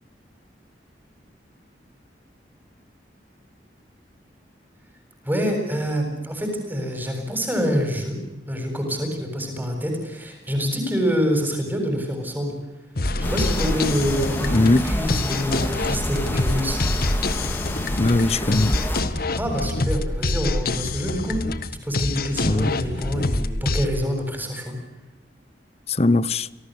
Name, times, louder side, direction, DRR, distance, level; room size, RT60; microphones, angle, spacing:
voice 1, 5.2-8.2 8.5-12.5 13.2-16.8 19.3-21.5 21.8-24.8, equal, 10° right, 7.8 m, -26 dB
sound 1, 13.0-23.9, left 2 dB, 55° left, 1.6 m, -26 dB
sound 2, 13.2-19.0, left 1 dB, 10° left, 4.3 m, -28 dB
voice 2, 14.5-14.9 18.0-18.8 22.4-22.7 25.9-26.5, left 2 dB, 35° left, 0.9 m, -20 dB
29.0 x 18.5 x 8.1 m
head